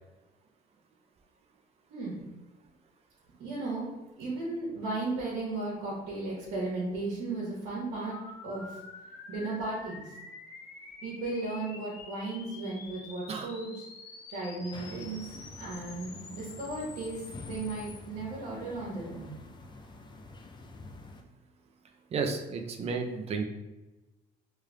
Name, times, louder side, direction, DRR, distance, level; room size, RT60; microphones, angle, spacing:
voice 1, 1.9-2.2 3.4-3.9 4.2-8.2 8.4-8.8 9.3-10.1 11.0-13.9 14.3-19.4, right 2 dB, 80° right, -7 dB, 1.4 m, -35 dB
sound 1, 8.1-18.0, left 4 dB, 80° left, 0.8 m, -48 dB
sound 2, 14.7-21.2, left 3 dB, 25° left, 0.4 m, -47 dB
voice 2, 22.1-23.4, right 4 dB, 40° right, 4 dB, 0.5 m, -32 dB
4.7 x 3.3 x 2.3 m, 1.1 s
cardioid pair, 110°, 17 cm